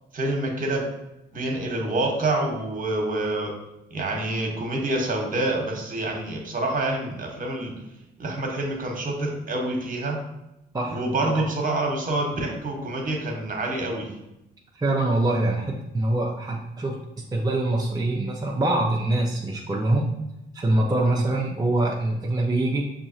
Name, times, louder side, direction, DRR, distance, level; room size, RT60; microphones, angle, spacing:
voice 1, 0.1-0.8 1.3-3.5 3.9-7.7 8.2-10.2 10.9-14.1 21.1-21.2, right 2 dB, 45° right, 1 dB, 1.1 m, -27 dB
voice 2, 10.7-11.4 14.7-17.0 17.3-20.1 20.5-22.8, right 2 dB, 20° right, -2 dB, 0.5 m, -24 dB
6.0 x 2.8 x 2.7 m, 0.90 s
cardioid pair, 90°, 20 cm